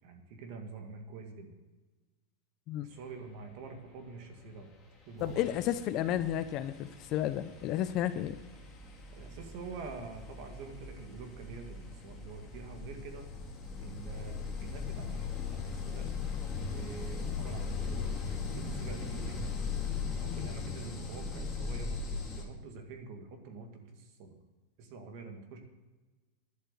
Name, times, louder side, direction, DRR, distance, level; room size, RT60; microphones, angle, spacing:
voice 1, 0.0-1.5 2.8-4.7 5.1-5.6 9.2-13.3 13.8-16.1 16.7-19.6 20.2-24.4 24.8-25.6, right 4 dB, 40° right, 4 dB, 2.0 m, -46 dB
sound 1, 4.6-4.8 5.2-22.4, left 5 dB, 10° left, 1.8 m, -39 dB
voice 2, 5.2-8.4 20.3-20.5, left 12 dB, 30° left, 12 dB, 0.4 m, -32 dB
11.0 x 7.9 x 8.0 m, 1.2 s
supercardioid pair, 180°, 0 cm